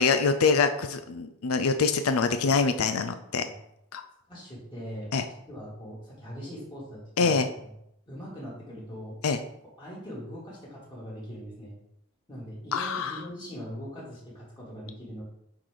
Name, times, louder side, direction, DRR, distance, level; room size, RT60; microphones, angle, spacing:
voice 1, 0.0-3.5 3.9-4.0 5.1-5.2 7.2-7.5 9.2-9.4 12.7-13.2, left 4 dB, 90° left, 9 dB, 0.5 m, -25 dB
voice 2, 4.3-5.1 5.5-7.6 8.1-9.2 9.8-11.7 12.3-15.2, equal, 20° left, -7 dB, 3.1 m, -41 dB
8.5 x 4.9 x 4.0 m, 0.79 s
head